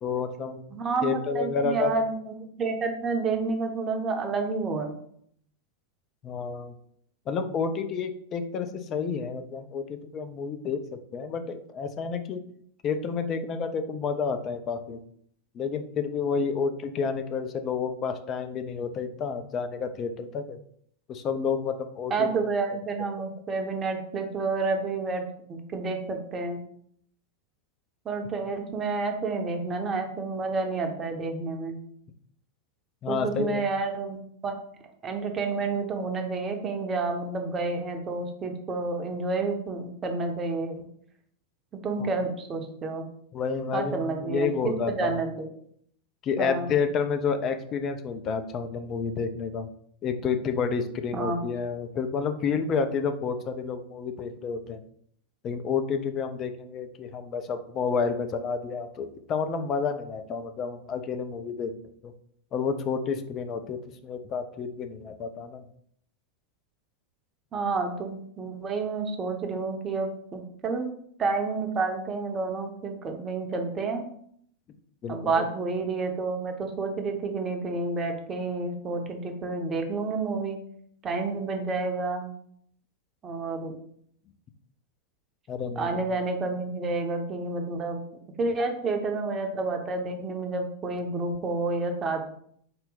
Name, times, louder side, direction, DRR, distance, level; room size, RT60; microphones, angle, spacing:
voice 1, 0.0-0.6 1.0-1.9 6.2-6.7 7.3-12.4 12.8-15.0 15.5-20.6 21.1-22.3 33.0-33.6 42.0-42.1 43.3-45.2 46.2-49.7 50.0-54.8 55.4-61.7 62.0-62.1 62.5-65.6 75.0-75.4 85.5-86.0, left 5 dB, 30° left, 8 dB, 0.4 m, -30 dB
voice 2, 0.7-2.1 2.6-5.0 22.1-25.2 25.5-26.6 28.0-31.8 33.1-34.6 35.0-40.8 41.8-43.1 43.7-44.5 45.0-45.3 46.4-46.7 51.1-51.4 67.5-70.9 71.2-74.1 75.1-80.6 81.0-82.3 83.2-83.7 85.8-88.0 88.4-92.2, right 3 dB, 25° right, 4 dB, 0.6 m, -29 dB
3.9 x 2.1 x 3.9 m, 0.66 s
figure-of-eight pair, 90°, 0 cm